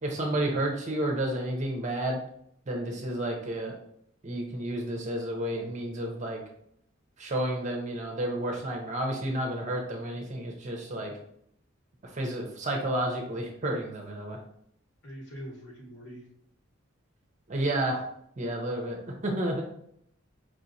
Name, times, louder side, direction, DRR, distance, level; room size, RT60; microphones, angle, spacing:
voice 1, 0.0-2.2 2.7-3.7 4.2-6.4 7.2-11.1 12.1-14.4 17.5-18.0 18.4-19.6, right 1 dB, 35° right, 1 dB, 0.6 m, -31 dB
voice 2, 15.0-16.3, equal, 55° left, -3 dB, 1.1 m, -43 dB
4.8 x 2.9 x 2.6 m, 0.73 s
head